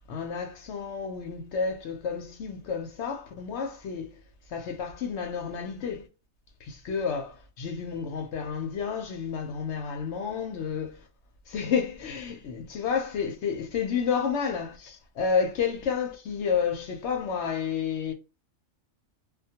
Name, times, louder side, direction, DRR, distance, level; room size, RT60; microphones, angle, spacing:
voice 1, 0.1-4.2 4.5-6.1 6.6-11.1 11.5-18.1, left 6 dB, 65° left, 0.8 m, -30 dB
2.3 x 2.2 x 2.7 m
omnidirectional pair, 1.4 m